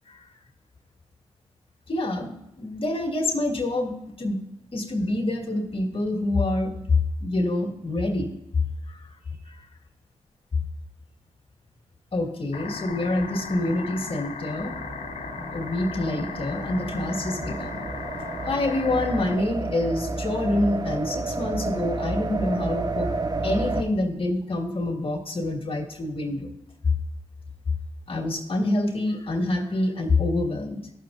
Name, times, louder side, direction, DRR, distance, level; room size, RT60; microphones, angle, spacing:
voice 1, 1.9-4.4 4.7-8.3 8.9-9.1 9.5-9.7 12.1-14.8 15.5-17.9 18.5-23.2 23.4-26.5 28.1-30.8, left 2 dB, 50° left, 2 dB, 1.8 m, -26 dB
sound 1, 12.5-19.3, left 5 dB, 75° left, 0.9 m, -37 dB
sound 2, 14.6-23.8, right 3 dB, 35° right, 0.9 m, -31 dB
14.5 x 6.4 x 2.5 m, 0.86 s
supercardioid pair, 40°, 12 cm